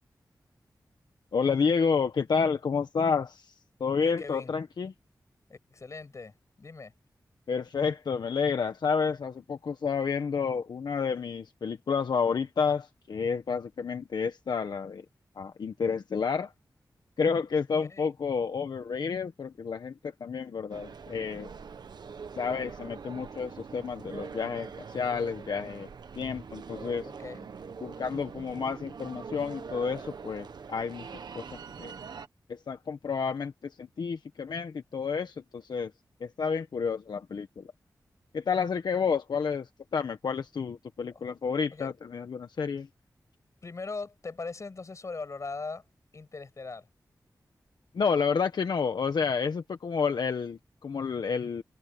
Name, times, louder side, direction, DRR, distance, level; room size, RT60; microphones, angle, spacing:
voice 1, 1.3-3.5 3.8-4.9 7.5-15.0 15.4-16.5 17.2-21.5 22.4-25.9 26.2-27.1 27.8-31.1 31.3-31.4 31.8-31.9 32.5-35.9 36.2-37.7 38.3-42.9 47.9-51.6, left 5 dB, 85° left, 1.2 m, -30 dB
voice 2, 4.0-4.5 5.5-6.9 17.9-18.1 27.0-27.5 41.1-41.2 41.7-41.9 43.6-45.8 46.1-46.9, left 4 dB, 45° left, 7.1 m, -40 dB
sound 1, 20.7-32.3, right 5 dB, 80° right, 1.2 m, -43 dB
wide cardioid pair, 130°, 7 cm